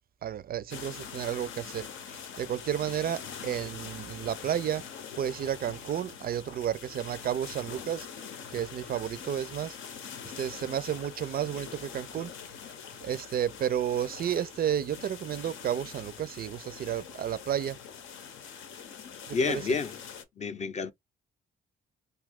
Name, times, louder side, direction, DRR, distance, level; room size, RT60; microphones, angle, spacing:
voice 1, 0.2-4.8 5.2-8.1 8.5-9.8 10.3-12.3 13.0-17.8 19.3-19.6, right 10 dB, 50° right, 0.4 m, -32 dB
sound 1, 0.7-20.2, left 7 dB, 80° left, 0.8 m, -44 dB
voice 2, 19.3-20.0 20.4-20.9, left 4 dB, 35° left, 0.6 m, -29 dB
2.7 x 2.3 x 3.5 m
cardioid pair, 90°, 20 cm